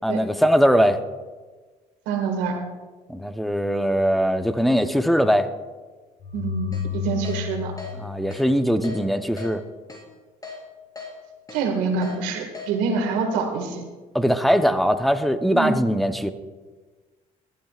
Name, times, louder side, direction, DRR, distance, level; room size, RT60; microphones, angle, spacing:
voice 1, 0.0-1.0 3.1-5.5 8.0-9.6 14.1-16.3, equal, ahead, 8 dB, 1.0 m, -21 dB
voice 2, 2.1-2.6 6.3-7.7 11.5-13.8 15.5-15.8, right 5 dB, 85° right, 3 dB, 2.1 m, -26 dB
sound 1, 6.2-9.1, left 9 dB, 55° left, 4.4 m, -32 dB
Keyboard (musical), 6.7-6.8 7.2-7.4 7.8-7.9 8.3-8.4 8.8-9.0 9.4-9.5 9.9-10.0 10.4-10.6 11.0-11.1 11.5-11.6 12.0-12.2 12.5-12.7, left 5 dB, 20° left, 4.5 m, -37 dB
20.0 x 12.5 x 2.5 m, 1.3 s
supercardioid pair, 70°, 17 cm